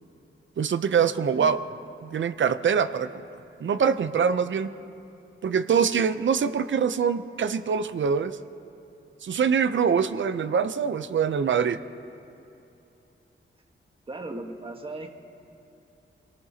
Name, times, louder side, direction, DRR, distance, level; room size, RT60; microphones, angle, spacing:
voice 1, 0.6-1.6 2.0-3.1 3.6-4.7 5.4-8.4 9.2-11.8, right 7 dB, 65° right, 12 dB, 0.6 m, -24 dB
voice 2, 14.1-15.1, right 2 dB, 25° right, 3 dB, 1.4 m, -37 dB
27.0 x 18.5 x 2.9 m, 2.8 s
wide cardioid pair, 135°, 21 cm